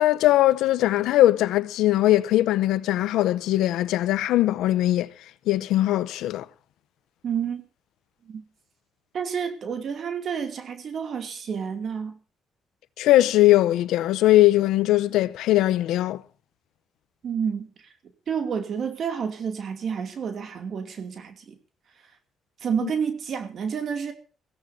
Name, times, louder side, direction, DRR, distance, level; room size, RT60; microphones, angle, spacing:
voice 1, 0.0-5.1 5.5-6.5 13.0-16.2 22.8-22.9, left 15 dB, 90° left, 0.7 m, -20 dB
voice 2, 7.2-7.6 8.3-8.4 9.1-12.1 17.2-17.7 18.3-21.5 22.6-24.1, right 7 dB, 60° right, 2.6 m, -29 dB
22.5 x 16.0 x 2.8 m
cardioid pair, 90°, 0 cm